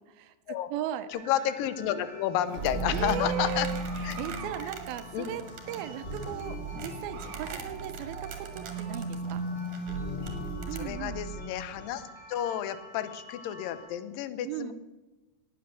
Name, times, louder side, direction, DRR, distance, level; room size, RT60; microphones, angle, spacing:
voice 1, 0.1-1.1 2.9-9.4 10.7-11.3 14.4-14.7, right 10 dB, 80° right, 10 dB, 2.6 m, -37 dB
voice 2, 1.1-3.7 4.0-4.2 5.1-5.3 10.7-12.0 12.3-14.7, left 11 dB, 75° left, 13 dB, 2.4 m, -31 dB
sound 1, 1.1-13.9, equal, 45° left, 7.6 m, -49 dB
sound 2, 2.5-11.7, right 2 dB, 15° left, 2.7 m, -37 dB
sound 3, 2.5-10.9, right 5 dB, 60° right, 3.0 m, -44 dB
18.5 x 8.7 x 6.9 m, 1.1 s
omnidirectional pair, 4.4 m